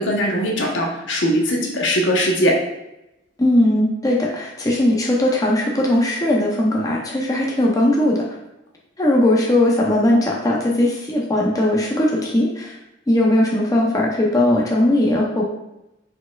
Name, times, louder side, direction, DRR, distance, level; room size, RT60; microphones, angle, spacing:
voice 1, 0.0-2.5, equal, 75° left, 0 dB, 0.9 m, -20 dB
voice 2, 3.4-8.2 9.0-12.8 13.1-15.4, left 1 dB, 20° left, -3 dB, 0.6 m, -18 dB
4.8 x 4.1 x 2.3 m, 0.91 s
head